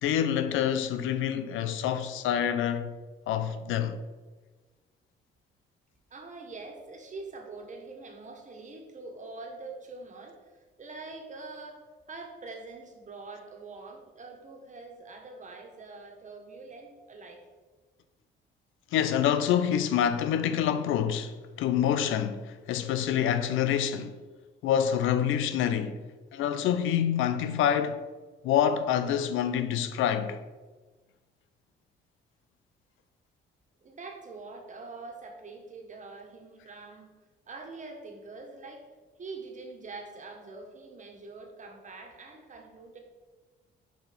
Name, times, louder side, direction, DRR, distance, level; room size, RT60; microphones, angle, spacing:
voice 1, 0.0-2.9 3.3-4.0 18.9-24.2 24.6-26.0 26.3-28.0 28.4-30.4, left 9 dB, 85° left, 0.5 m, -27 dB
voice 2, 6.1-11.8 12.1-17.4 33.8-37.1 37.5-38.9 39.2-43.0, right 3 dB, 40° right, 1.5 m, -44 dB
5.6 x 5.1 x 5.2 m
cardioid pair, 90°, 20 cm